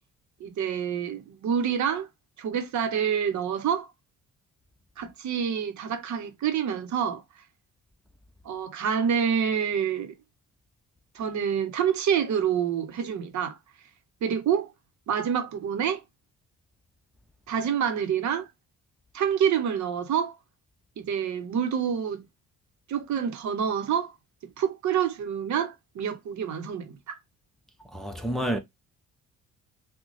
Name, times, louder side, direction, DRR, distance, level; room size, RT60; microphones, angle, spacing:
voice 1, 0.4-2.1 2.4-3.9 5.0-7.2 8.4-10.1 11.1-13.6 14.2-14.7 15.1-16.0 17.5-18.5 19.1-20.3 21.0-22.2 22.9-24.1 24.6-27.2, right 8 dB, 70° right, 0.8 m, -27 dB
voice 2, 27.9-28.6, right 1 dB, ahead, 0.8 m, -29 dB
3.7 x 2.2 x 3.1 m
cardioid pair, 90°, 30 cm